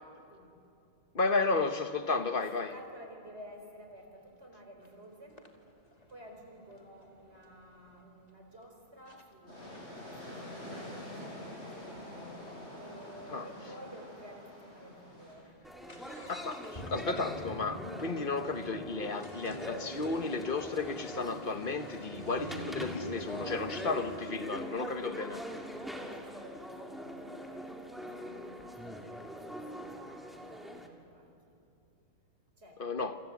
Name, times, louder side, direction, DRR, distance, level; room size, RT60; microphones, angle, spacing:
voice 1, 1.1-2.7 13.3-13.4 16.3-25.4 32.8-33.2, left 3 dB, 55° left, 1.2 m, -33 dB
voice 2, 2.1-5.4 6.1-11.9 12.7-15.6 24.7-25.4 25.6-31.5 32.6-32.8, right 1 dB, 80° right, 4.8 m, -53 dB
sound 1, 4.8-4.9 5.4-8.0 8.6-8.7 9.1-9.2 9.6-13.3 13.6-13.7 13.9-14.0 14.6-14.7 15.0-24.2, left 1 dB, 35° left, 2.2 m, -47 dB
sound 2, 9.5-15.4, left 1 dB, 90° left, 7.1 m, -46 dB
sound 3, 15.6-30.9, equal, ahead, 2.1 m, -43 dB
27.5 x 25.5 x 8.3 m
omnidirectional pair, 1.1 m